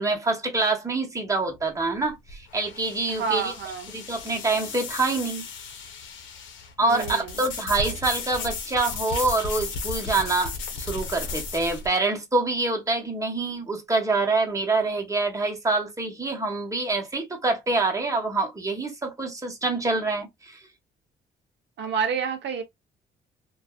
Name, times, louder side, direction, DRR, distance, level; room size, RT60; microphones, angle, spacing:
voice 1, 0.0-3.5 3.9-5.5 6.8-20.6, right 3 dB, 15° right, 1.1 m, -26 dB
sound 1, 1.5-11.9, left 4 dB, 75° left, 0.8 m, -35 dB
voice 2, 3.1-3.9 6.8-7.3 21.8-22.6, right 7 dB, 65° right, 0.6 m, -29 dB
2.5 x 2.3 x 2.3 m
cardioid pair, 90°, 20 cm